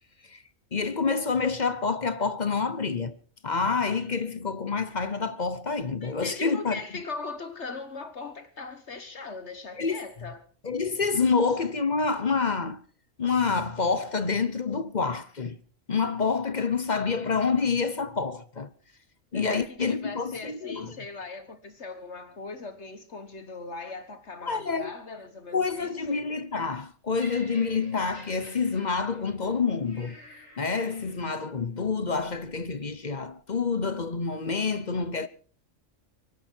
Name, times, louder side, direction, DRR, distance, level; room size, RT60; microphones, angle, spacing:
voice 1, 0.7-3.1 3.4-6.8 9.8-10.0 10.6-12.8 13.2-15.6 15.9-18.7 19.3-21.0 24.4-24.9 25.5-30.2 30.6-35.3, left 4 dB, 40° left, 1.0 m, -27 dB
voice 2, 6.0-10.4 19.3-26.2, left 3 dB, 60° left, 1.6 m, -40 dB
Laughter, 27.2-31.4 32.2-32.4, equal, 80° left, 7.6 m, -50 dB
24.0 x 11.5 x 4.6 m
omnidirectional pair, 1.3 m